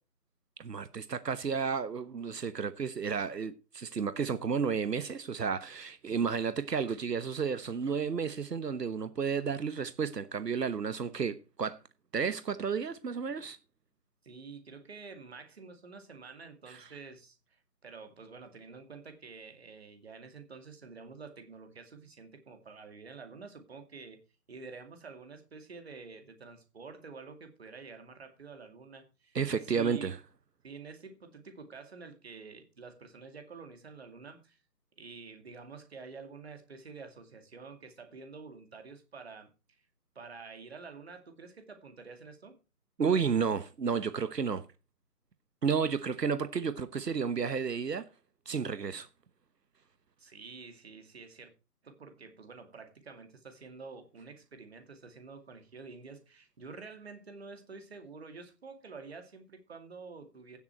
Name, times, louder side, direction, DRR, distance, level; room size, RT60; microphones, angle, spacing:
voice 1, 0.6-11.8 12.1-13.6 29.3-30.2 43.0-44.6 45.6-48.0 48.5-49.1, right 6 dB, 85° right, 1.2 m, -32 dB
voice 2, 14.2-24.2 24.5-30.1 30.6-34.6 35.0-39.8 40.2-42.6 50.2-51.5 51.8-60.6, right 4 dB, 40° right, 2.3 m, -48 dB
16.0 x 7.2 x 4.5 m
figure-of-eight pair, 170°, 47 cm